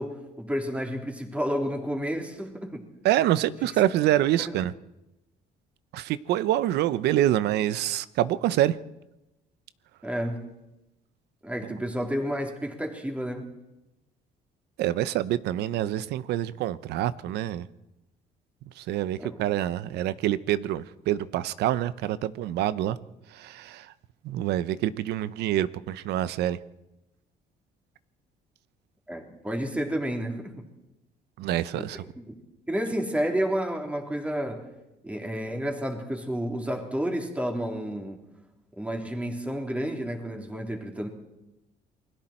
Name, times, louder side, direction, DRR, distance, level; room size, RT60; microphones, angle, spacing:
voice 1, 0.0-2.8 4.4-4.5 10.0-10.5 11.4-13.5 19.2-19.4 29.1-30.5 31.7-31.9 32.2-32.4 32.7-34.7 35.0-38.2 38.8-41.1, equal, 10° right, 3.5 m, -31 dB
voice 2, 3.0-4.7 5.9-8.8 14.8-17.7 18.8-23.0 23.3-23.9 24.2-26.6 31.4-32.0, right 13 dB, 80° right, 0.8 m, -26 dB
28.5 x 20.5 x 4.5 m
cardioid pair, 110°, 17 cm